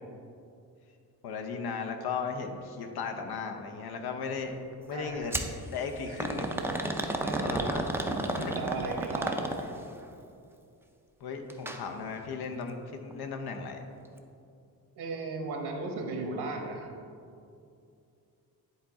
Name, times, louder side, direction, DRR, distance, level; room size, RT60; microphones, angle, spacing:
voice 1, 1.2-4.6 4.9-5.4 5.7-6.6 7.4-7.9 8.4-8.7 11.2-13.8, left 5 dB, 75° left, 5 dB, 0.8 m, -36 dB
voice 2, 4.9-5.4 6.1-6.2 7.2-7.6 8.6-9.4 15.0-16.9, right 3 dB, 85° right, 2 dB, 1.1 m, -36 dB
sound 1, 5.3-5.5 6.2-9.9 11.5-11.8 12.2-12.3 13.1-13.2, right 1 dB, 5° right, 0.3 m, -31 dB
10.0 x 4.1 x 3.6 m, 2.5 s
wide cardioid pair, 130°, 38 cm